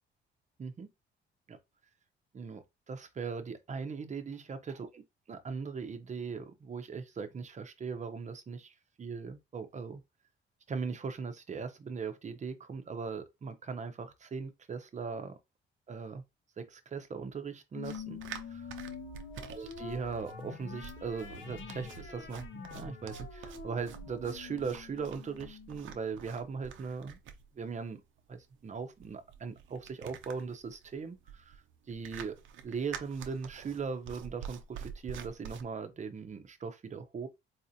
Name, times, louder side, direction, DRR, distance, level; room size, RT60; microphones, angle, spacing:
voice 1, 2.3-5.0 5.3-10.0 10.7-15.3 15.9-16.2 16.6-18.2 18.5-18.7 19.5-27.2 27.5-28.0 28.3-32.4 32.6-37.3, right 5 dB, 35° right, 0.7 m, -39 dB
sound 1, 17.7-26.5, left 5 dB, 75° left, 1.0 m, -46 dB
sound 2, 17.8-35.6, right 8 dB, 75° right, 0.6 m, -48 dB
4.1 x 2.5 x 2.8 m
cardioid pair, 90°, 20 cm